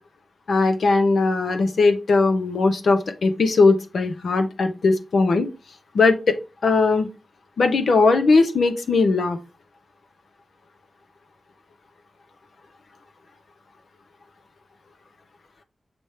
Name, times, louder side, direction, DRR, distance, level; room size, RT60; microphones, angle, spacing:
voice 1, 0.5-5.5 5.9-6.3 6.6-7.1 7.6-9.4, left 3 dB, 90° left, 6 dB, 1.0 m, -19 dB
7.0 x 3.3 x 4.4 m, 0.29 s
wide cardioid pair, 105°, 0 cm